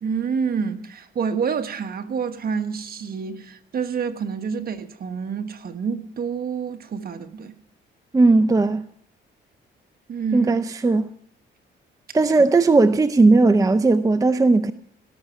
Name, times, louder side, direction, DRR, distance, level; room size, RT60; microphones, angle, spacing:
voice 1, 0.0-7.5 10.1-10.6 12.1-12.2, right 6 dB, 50° right, 1.3 m, -28 dB
voice 2, 8.1-8.8 10.3-11.1 12.1-14.7, right 3 dB, 15° right, 0.5 m, -17 dB
17.5 x 6.4 x 9.2 m
cardioid pair, 90°, 20 cm